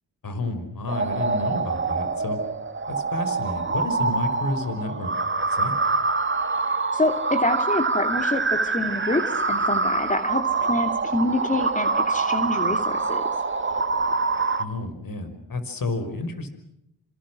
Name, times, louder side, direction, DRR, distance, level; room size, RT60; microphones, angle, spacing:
voice 1, 0.2-2.4 2.9-5.1 5.5-5.8 14.6-16.5, left 2 dB, 55° left, 10 dB, 5.5 m, -30 dB
sound 1, 0.9-14.6, right 4 dB, 30° right, 1.8 m, -25 dB
voice 2, 6.9-9.2 9.5-13.2, left 2 dB, 20° left, 6 dB, 2.7 m, -26 dB
26.5 x 26.5 x 6.3 m, 0.78 s
cardioid pair, 65°, 40 cm